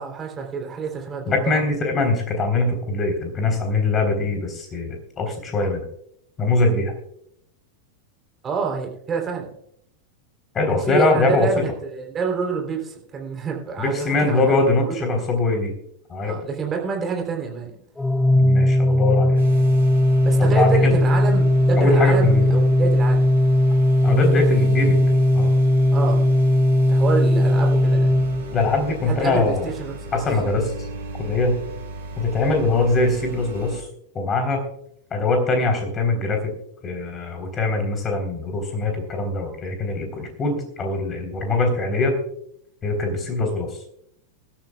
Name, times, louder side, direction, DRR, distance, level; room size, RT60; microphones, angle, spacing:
voice 1, 0.0-1.6 8.4-9.5 10.7-15.2 16.2-17.7 20.2-23.4 24.0-24.7 25.0-25.1 25.9-26.3 26.9-28.3 29.1-30.2, right 5 dB, 20° right, 1 dB, 3.4 m, -28 dB
voice 2, 1.3-5.8 6.4-6.9 10.5-11.6 13.8-15.7 16.1-16.3 18.3-19.4 20.4-21.0 21.8-22.4 24.0-25.0 25.3-25.5 28.5-29.7 30.1-30.7 31.2-31.6 32.2-33.9 34.1-34.6 35.1-36.5 36.8-42.2 42.8-43.8, left 3 dB, 25° left, 5 dB, 3.8 m, -22 dB
Organ, 18.0-28.9, left 1 dB, 10° left, 0.4 m, -18 dB
sound 1, 19.3-33.8, right 1 dB, 65° right, 5.9 m, -38 dB
23.5 x 13.0 x 2.4 m, 0.72 s
figure-of-eight pair, 90°, 0 cm